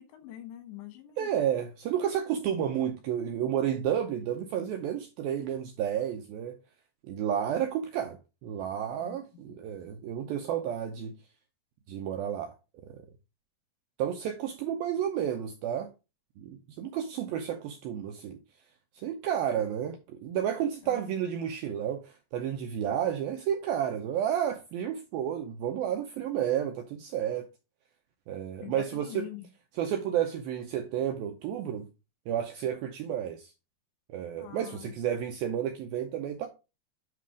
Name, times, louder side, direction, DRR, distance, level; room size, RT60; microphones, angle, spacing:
voice 1, 0.0-1.3 9.0-9.2 9.5-9.6 20.8-21.1 28.6-29.5 34.4-34.9, left 13 dB, 85° left, 3.7 m, -44 dB
voice 2, 1.2-6.6 7.0-11.1 11.9-12.5 12.8-13.0 14.0-15.9 16.4-18.4 19.0-27.5 28.3-29.3 29.7-31.9 32.3-33.5 34.1-36.5, right 9 dB, 90° right, 2.1 m, -31 dB
9.3 x 3.4 x 4.9 m
omnidirectional pair, 5.0 m